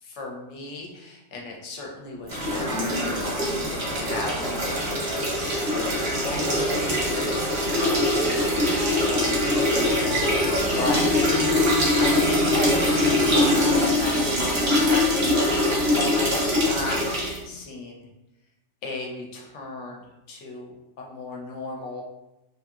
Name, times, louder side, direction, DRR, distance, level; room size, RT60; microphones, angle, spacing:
voice 1, 0.0-8.8 9.0-11.2 12.0-17.0 17.4-18.0 18.8-22.0, left 2 dB, 80° left, 0 dB, 1.0 m, -35 dB
sound 1, 2.3-17.4, left 1 dB, 65° right, 1.0 m, -23 dB
sound 2, 2.3-13.8, right 1 dB, 85° right, 1.2 m, -32 dB
2.8 x 2.7 x 2.3 m, 0.98 s
omnidirectional pair, 1.2 m